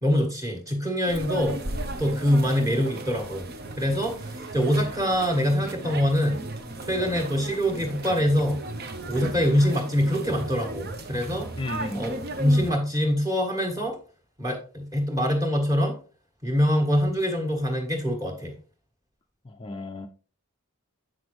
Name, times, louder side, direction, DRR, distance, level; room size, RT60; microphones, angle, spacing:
voice 1, 0.0-1.6 2.0-3.5 3.8-4.2 4.5-6.5 6.8-8.6 9.1-11.5 11.9-14.0 14.4-15.9 16.4-18.5, equal, 15° right, 1.6 m, -24 dB
sound 1, 1.1-12.7, right 2 dB, 45° right, 0.7 m, -36 dB
voice 2, 11.6-12.1 19.4-20.1, left 2 dB, 20° left, 0.4 m, -34 dB
7.6 x 6.0 x 3.1 m
head